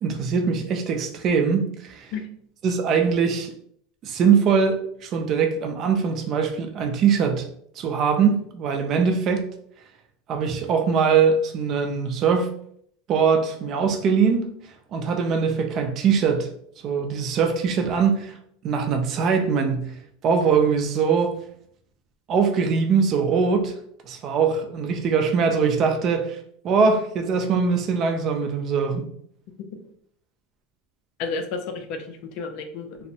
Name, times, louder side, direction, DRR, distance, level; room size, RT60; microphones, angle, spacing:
voice 1, 0.0-2.1 2.6-3.5 4.0-7.4 7.8-9.4 10.3-12.5 13.1-14.5 14.9-16.5 16.8-18.3 18.6-19.9 20.2-21.3 22.3-23.7 24.1-26.4 26.6-29.1, right 6 dB, 35° right, 0.4 m, -22 dB
voice 2, 31.2-33.1, left 4 dB, 55° left, 0.4 m, -32 dB
2.6 x 2.0 x 2.7 m
supercardioid pair, 145°, 0 cm